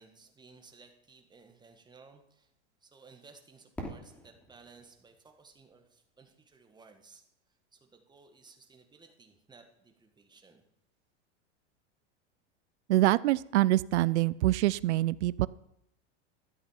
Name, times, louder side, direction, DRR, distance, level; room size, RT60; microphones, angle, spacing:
voice 1, 0.0-2.5 2.8-7.2 7.7-10.7, right 4 dB, 10° right, 5 dB, 1.5 m, -57 dB
Fireworks, 3.8-6.6, equal, 5° left, 2.9 m, -47 dB
voice 2, 12.9-15.5, right 16 dB, 80° right, 20 dB, 0.5 m, -25 dB
13.0 x 8.0 x 5.7 m, 0.80 s
hypercardioid pair, 120°, 34 cm